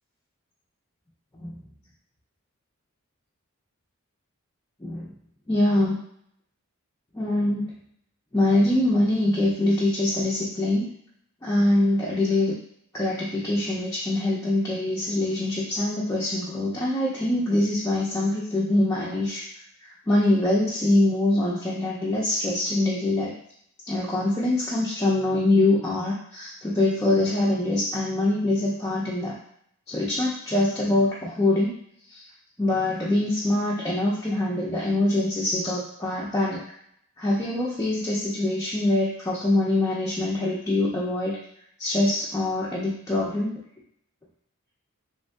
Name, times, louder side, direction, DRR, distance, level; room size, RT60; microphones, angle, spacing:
voice 1, 5.5-6.0 7.1-7.7 8.3-10.9 11.4-12.6 12.9-19.4 19.8-23.3 23.9-29.4 29.9-31.8 32.1-32.2 32.6-36.6 37.2-41.4 41.8-43.6, left 1 dB, 15° left, -6 dB, 0.4 m, -24 dB
3.1 x 2.6 x 2.2 m, 0.69 s
head